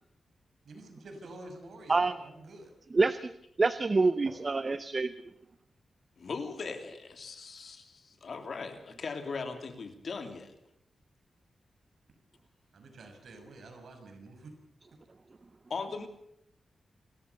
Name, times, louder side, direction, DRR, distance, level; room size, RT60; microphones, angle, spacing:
voice 1, 0.7-2.7 4.3-4.4 12.7-14.5, right 2 dB, 75° right, 5 dB, 5.9 m, -48 dB
voice 2, 2.9-3.3 3.6-5.1, right 3 dB, 35° right, 13 dB, 0.8 m, -26 dB
voice 3, 6.2-10.6 15.7-16.1, left 4 dB, 60° left, 6 dB, 3.1 m, -39 dB
27.5 x 14.0 x 6.9 m, 0.74 s
wide cardioid pair, 110°, 0 cm